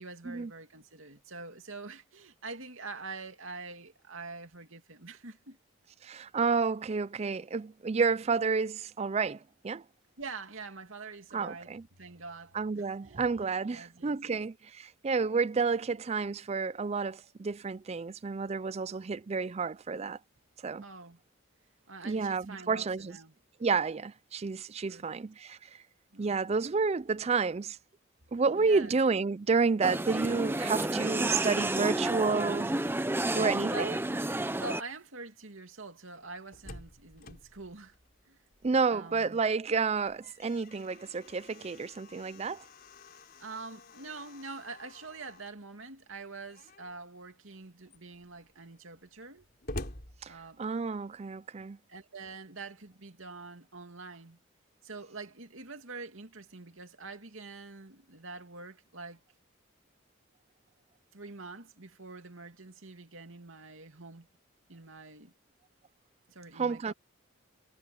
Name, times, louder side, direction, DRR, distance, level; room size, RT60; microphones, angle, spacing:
voice 1, 0.0-5.6 10.2-13.2 13.6-14.4 20.8-21.2 21.9-23.3 24.9-25.0 26.1-26.4 28.5-29.0 33.7-33.9 34.6-38.0 38.3-38.4 38.9-39.4 43.4-49.5 50.3-50.6 51.9-54.4 54.8-59.2 61.1-64.3 64.7-65.3 66.3-66.9, right 3 dB, 75° right, 2.6 m, -45 dB
voice 2, 6.0-9.8 11.3-11.8 12.5-20.2 20.6-20.8 22.0-23.2 23.6-25.7 26.2-27.8 28.3-32.7 33.3-34.0 38.6-42.6 50.2-51.8 66.6-66.9, right 4 dB, 30° right, 0.4 m, -30 dB
sound 1, 29.8-34.8, right 1 dB, 10° right, 0.8 m, -31 dB
Slam, 36.2-39.0 39.4-39.5 39.9-45.6 46.5-47.0 47.5-47.6 47.9-51.0, left 1 dB, 50° left, 4.3 m, -48 dB
head